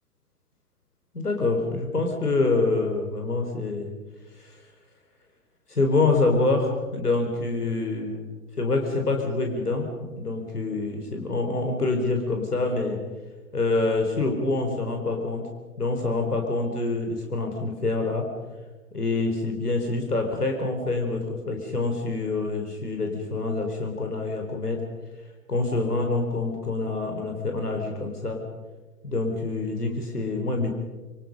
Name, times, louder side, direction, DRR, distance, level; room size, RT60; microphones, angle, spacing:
voice 1, 1.1-3.9 4.4-4.6 5.7-8.2 8.6-9.9 10.1-13.0 13.5-15.5 15.8-18.3 18.9-24.8 25.5-28.4 29.0-30.7, left 3 dB, 80° left, 3 dB, 4.5 m, -26 dB
27.0 x 25.5 x 5.4 m, 1.3 s
figure-of-eight pair, 125°, 45 cm